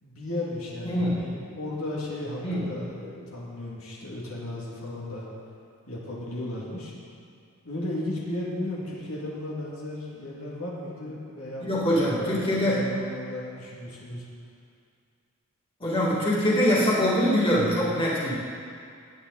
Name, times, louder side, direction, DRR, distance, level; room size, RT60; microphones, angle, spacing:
voice 1, 0.0-5.3 5.9-6.9 7.6-14.2, left 1 dB, 80° left, -5 dB, 2.5 m, -35 dB
voice 2, 0.8-1.2 2.4-2.6 11.6-12.9 15.8-18.3, equal, 25° left, -7 dB, 2.7 m, -23 dB
18.0 x 9.3 x 4.2 m, 2.3 s
head